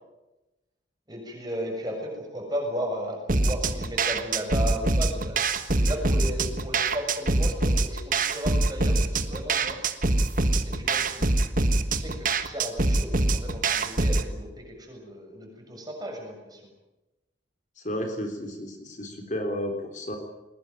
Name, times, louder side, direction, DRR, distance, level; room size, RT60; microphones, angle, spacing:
voice 1, 1.1-5.4 5.8-9.8 10.6-11.5 11.9-16.6, equal, 20° right, 2 dB, 7.0 m, -35 dB
sound 1, 3.3-14.3, right 2 dB, 45° right, 1.5 m, -24 dB
voice 2, 17.8-20.2, equal, 40° left, 4 dB, 3.7 m, -32 dB
21.5 x 21.0 x 9.2 m, 1.0 s
head